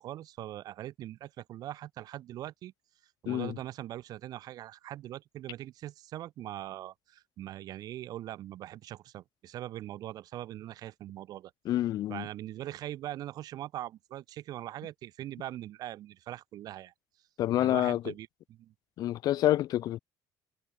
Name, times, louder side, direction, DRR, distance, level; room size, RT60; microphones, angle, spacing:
voice 1, 0.0-2.7 3.2-11.5 12.1-16.9 17.6-18.7, right 13 dB, 60° right, 1.8 m, -41 dB
voice 2, 3.3-3.6 11.6-12.2 17.4-18.0 19.0-20.0, left 13 dB, 55° left, 0.9 m, -27 dB
cardioid pair, 150°, 8 cm